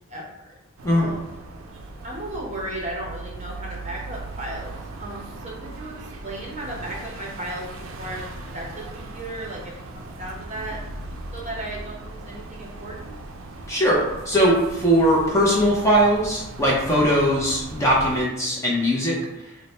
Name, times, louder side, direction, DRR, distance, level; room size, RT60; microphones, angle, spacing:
voice 1, 0.1-0.5 0.9-1.3 2.0-4.7 5.0-6.0 6.2-7.7 8.0-10.8 11.3-13.1, right 1 dB, 30° right, -3 dB, 0.7 m, -35 dB
sound 1, 0.8-18.2, right 2 dB, 65° right, 0.4 m, -38 dB
voice 2, 13.7-19.1 19.4-19.5, equal, 15° left, -4 dB, 0.5 m, -20 dB
4.0 x 2.0 x 3.1 m, 0.94 s
head